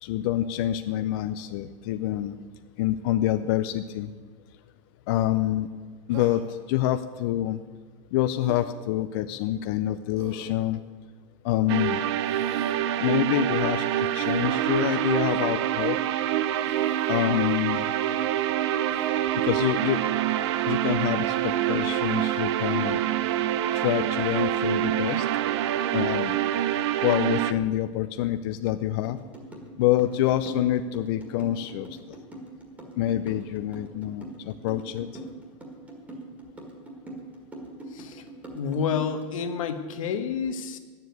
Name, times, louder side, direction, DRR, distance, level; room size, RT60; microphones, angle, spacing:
voice 1, 0.0-2.4 2.8-4.1 5.1-5.7 6.1-7.6 8.1-10.8 11.4-12.0 13.0-16.0 17.1-17.9 19.4-20.0 20.7-23.0 23.7-25.3 25.9-26.4 27.0-29.2 29.8-32.0 33.0-35.1, left 13 dB, 45° left, 10 dB, 0.5 m, -26 dB
Human voice, 6.1-6.6 8.4-8.7 10.2-10.6 12.2-12.8 14.1-14.4 15.3-15.6 16.6-17.3 18.9-19.1, right 6 dB, 70° right, 1.9 m, -45 dB
sound 1, 11.7-27.5, right 12 dB, 55° right, 0.6 m, -26 dB
sound 2, 29.0-39.6, right 1 dB, 10° right, 1.8 m, -42 dB
voice 2, 37.9-38.2 38.5-40.8, left 6 dB, 85° left, 8 dB, 1.3 m, -29 dB
10.5 x 7.4 x 9.3 m, 1.4 s
supercardioid pair, 165°, 17 cm